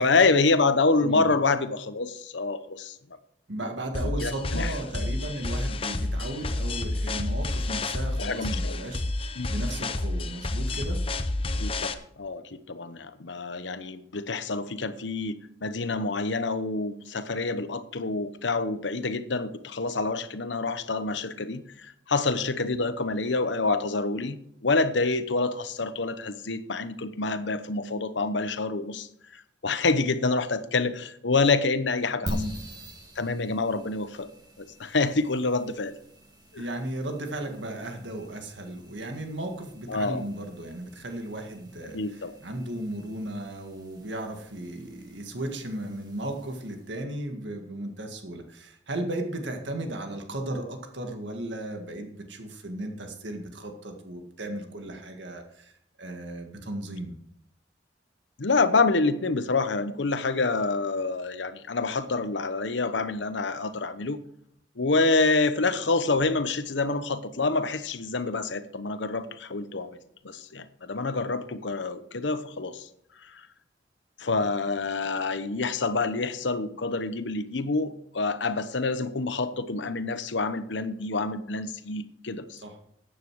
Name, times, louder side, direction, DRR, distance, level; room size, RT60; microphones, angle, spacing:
voice 1, 0.0-3.0 4.2-4.7 8.2-8.7 9.4-9.5 11.6-24.4 24.6-32.4 33.2-34.3 34.6-35.9 36.5-36.7 39.9-40.2 41.9-42.4 58.4-64.2 64.8-70.0 70.2-72.9 73.2-73.5 74.2-82.6, left 3 dB, 80° left, 12 dB, 0.9 m, -27 dB
voice 2, 3.5-9.0 9.5-11.0 32.2-32.5 36.6-55.7 56.0-57.2 82.6-82.8, right 1 dB, 80° right, 4 dB, 1.9 m, -35 dB
sound 1, 3.9-11.9, left 2 dB, 30° left, 0.7 m, -30 dB
sound 2, 32.3-47.0, equal, 25° right, 2.1 m, -45 dB
13.0 x 9.3 x 4.7 m, 0.71 s
head